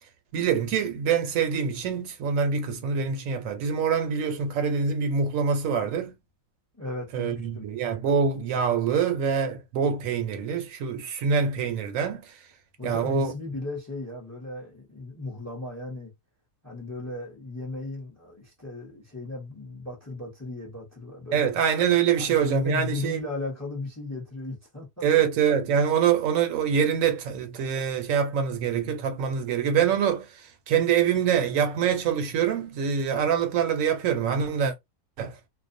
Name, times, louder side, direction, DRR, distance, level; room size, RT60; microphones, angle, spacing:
voice 1, 0.3-6.1 7.1-12.3 12.8-13.3 21.3-23.2 25.0-34.7 35.2-35.4, right 7 dB, 75° right, 1.0 m, -25 dB
voice 2, 6.7-7.6 12.8-16.1 16.6-21.5 22.2-25.3, left 2 dB, 15° left, 0.7 m, -36 dB
2.5 x 2.2 x 2.5 m
omnidirectional pair, 1.4 m